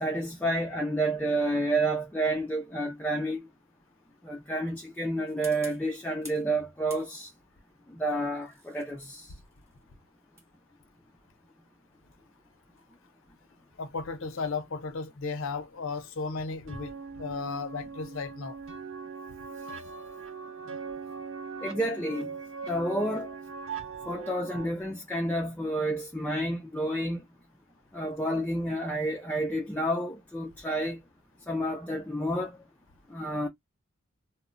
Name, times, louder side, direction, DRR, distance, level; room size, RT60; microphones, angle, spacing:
voice 1, 0.0-3.4 4.2-7.3 8.0-9.3 21.6-22.3 22.7-23.3 24.1-27.2 27.9-31.0 31.5-32.5 33.1-33.5, right 1 dB, 10° left, 0.3 m, -30 dB
sound 1, 5.3-6.5 6.9-7.5 8.2-13.0, right 1 dB, 10° right, 1.0 m, -52 dB
voice 2, 13.8-18.6, left 4 dB, 65° left, 0.6 m, -35 dB
sound 2, 16.7-24.7, right 5 dB, 65° right, 0.6 m, -40 dB
2.1 x 2.1 x 3.6 m
head